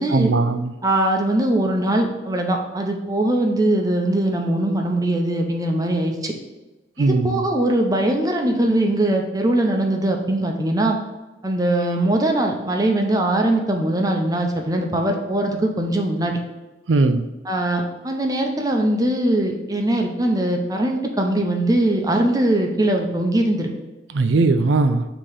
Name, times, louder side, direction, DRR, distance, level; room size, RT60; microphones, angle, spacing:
voice 1, 0.1-0.7 7.0-7.4 16.9-17.2 24.1-25.1, right 3 dB, 85° right, 10 dB, 0.5 m, -19 dB
voice 2, 0.8-6.3 7.0-11.0 11.4-16.4 17.5-23.7, right 1 dB, 20° right, 2 dB, 0.6 m, -21 dB
7.5 x 2.9 x 4.9 m, 1.1 s
head